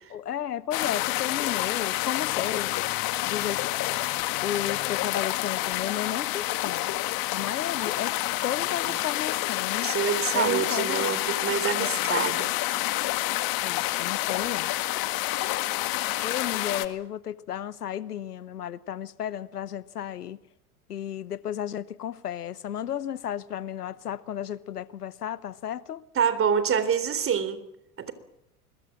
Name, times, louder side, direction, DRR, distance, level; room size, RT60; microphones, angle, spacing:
voice 1, 0.1-2.9 3.2-3.7 4.4-6.9 7.3-8.2 8.4-9.9 10.3-11.2 11.8-12.1 13.6-14.7 16.2-20.4 20.9-26.0, left 10 dB, 90° left, 1.0 m, -33 dB
sound 1, 0.7-16.9, left 18 dB, 50° left, 1.9 m, -28 dB
voice 2, 9.8-12.5 26.2-27.6 28.0-28.1, right 7 dB, 30° right, 3.6 m, -26 dB
25.0 x 22.0 x 7.4 m
hypercardioid pair, 90°, 45 cm